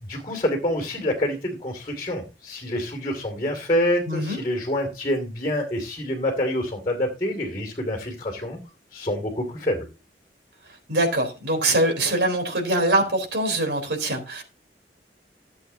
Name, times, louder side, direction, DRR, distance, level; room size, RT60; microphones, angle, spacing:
voice 1, 0.0-8.6 8.9-9.8, left 1 dB, 30° left, 2.6 m, -27 dB
voice 2, 4.1-4.4 10.9-14.4, right 1 dB, 75° right, 3.9 m, -23 dB
15.5 x 8.1 x 2.8 m
head